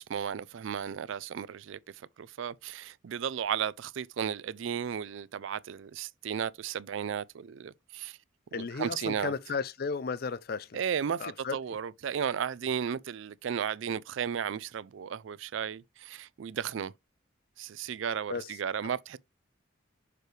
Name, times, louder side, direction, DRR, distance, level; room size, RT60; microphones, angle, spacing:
voice 1, 0.0-1.8 2.2-8.2 8.5-9.3 10.7-16.9 17.6-19.2, right 8 dB, 70° right, 0.4 m, -34 dB
voice 2, 8.5-10.8 11.2-11.6 18.3-18.6, left 5 dB, 45° left, 0.4 m, -34 dB
6.8 x 3.2 x 4.8 m
head